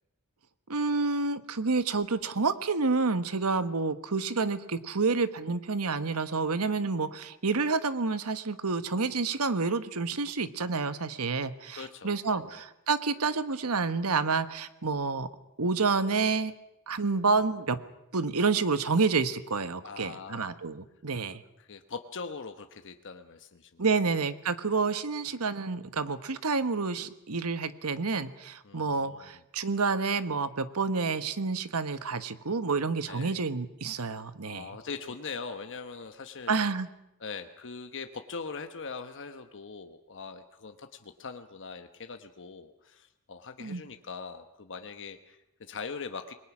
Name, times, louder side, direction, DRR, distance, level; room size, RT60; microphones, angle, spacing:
voice 1, 0.7-15.3 15.6-16.5 16.9-17.8 18.1-21.4 23.8-34.7 36.5-36.9 43.6-43.8, right 4 dB, 80° right, 12 dB, 1.3 m, -29 dB
voice 2, 11.7-12.6 19.8-20.6 21.6-24.0 28.6-29.3 33.1-33.4 34.4-36.6 37.2-46.3, left 5 dB, 60° left, 7 dB, 1.1 m, -42 dB
28.0 x 21.0 x 6.1 m, 0.85 s
head